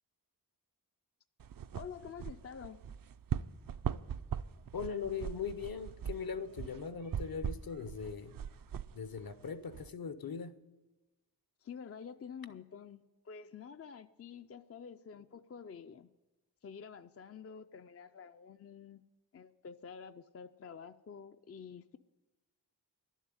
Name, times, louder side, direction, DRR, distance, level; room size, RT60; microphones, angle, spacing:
sound 1, 1.4-9.9, right 8 dB, 55° right, 0.5 m, -41 dB
voice 1, 1.7-2.9 11.6-16.1 16.6-19.0 19.3-22.0, left 6 dB, 35° left, 10 dB, 0.4 m, -49 dB
voice 2, 4.7-8.3 8.9-10.5, left 6 dB, 60° left, 13 dB, 0.8 m, -40 dB
11.5 x 7.3 x 9.6 m, 1.1 s
wide cardioid pair, 90°, 41 cm